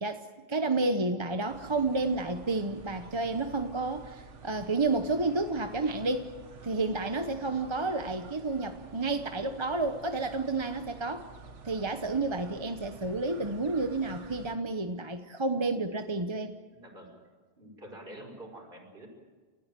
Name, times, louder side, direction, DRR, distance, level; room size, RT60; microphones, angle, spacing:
voice 1, 0.0-6.3 6.6-11.3 11.6-16.5, right 3 dB, 25° right, 7 dB, 0.9 m, -30 dB
sound 1, 1.5-14.6, right 4 dB, 90° right, 1.7 m, -50 dB
voice 2, 16.7-17.1 17.6-19.1, right 1 dB, 50° right, 1 dB, 5.8 m, -47 dB
29.5 x 14.5 x 9.0 m, 1.4 s
omnidirectional pair, 1.2 m